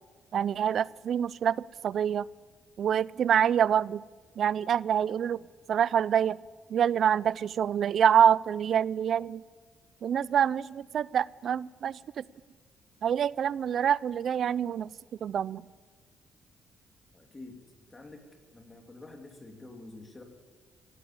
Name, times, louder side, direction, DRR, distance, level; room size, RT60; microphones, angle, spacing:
voice 1, 0.3-2.3 2.8-4.0 4.4-5.4 5.7-6.4 6.7-9.4 10.0-12.2 13.0-14.9 15.2-15.6, right 9 dB, 60° right, 22 dB, 0.3 m, -26 dB
voice 2, 17.1-17.6 17.9-20.2, left 2 dB, 20° left, 3 dB, 2.6 m, -48 dB
16.5 x 8.9 x 8.6 m, 1.5 s
cardioid pair, 90°, 0 cm